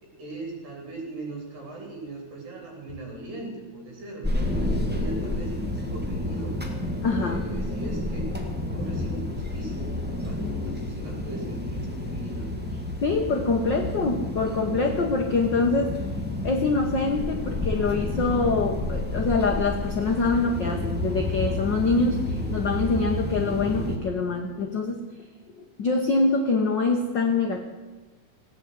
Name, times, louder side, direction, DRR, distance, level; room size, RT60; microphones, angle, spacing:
voice 1, 0.0-6.5 7.2-8.3 8.6-12.5, right 2 dB, 80° right, 0 dB, 5.5 m, -39 dB
sound 1, 4.2-24.0, left 1 dB, 10° right, 0.5 m, -30 dB
voice 2, 7.0-7.4 13.0-15.9 16.4-25.0 25.6-27.6, left 3 dB, 90° left, 3 dB, 0.9 m, -25 dB
16.5 x 9.1 x 8.2 m, 1.2 s
omnidirectional pair, 4.0 m